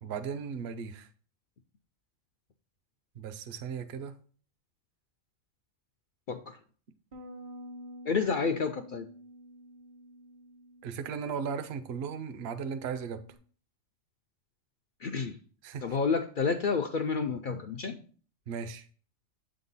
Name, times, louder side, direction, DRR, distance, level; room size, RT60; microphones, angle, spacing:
voice 1, 0.0-1.1 3.2-4.1 10.8-13.2 15.6-15.8 18.5-18.9, right 6 dB, 60° right, 0.8 m, -36 dB
voice 2, 6.3-6.6 8.0-9.1 15.0-15.4 15.8-18.0, left 5 dB, 65° left, 0.5 m, -30 dB
Bass guitar, 7.1-13.4, equal, 40° right, 0.5 m, -50 dB
7.8 x 3.8 x 4.0 m
omnidirectional pair, 1.3 m